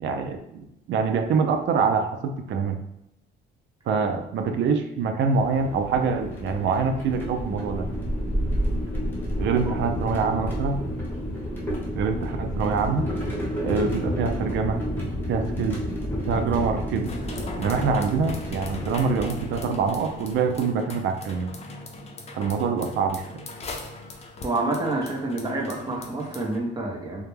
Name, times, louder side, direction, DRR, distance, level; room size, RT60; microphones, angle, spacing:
voice 1, 0.0-2.8 3.9-7.9 9.4-10.9 11.9-13.1 13.6-14.8 15.3-15.8 16.3-17.1 17.6-21.6 22.3-23.4, right 5 dB, 70° right, 5 dB, 0.4 m, -25 dB
sound 1, 5.3-20.3, equal, 10° left, 0.9 m, -30 dB
sound 2, 17.1-26.6, left 2 dB, 35° left, 0.4 m, -40 dB
voice 2, 24.4-27.2, right 2 dB, 20° right, -1 dB, 0.7 m, -28 dB
2.2 x 2.1 x 3.1 m, 0.82 s
cardioid pair, 90°, 20 cm